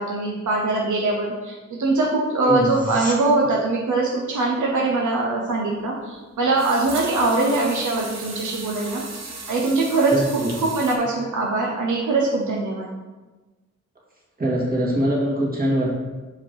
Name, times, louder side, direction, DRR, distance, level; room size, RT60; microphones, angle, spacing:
voice 1, 0.0-12.9, right 2 dB, 80° right, -1 dB, 1.0 m, -22 dB
voice 2, 2.4-2.8 10.1-10.5 14.4-15.9, equal, 30° right, -4 dB, 2.2 m, -22 dB
sound 1, 2.6-3.2 14.6-14.7, left 1 dB, 25° left, 1.4 m, -35 dB
sound 2, 5.7-5.8 6.6-11.0, right 3 dB, 60° right, 1.2 m, -36 dB
5.2 x 5.0 x 4.6 m, 1.2 s
cardioid pair, 75°, 30 cm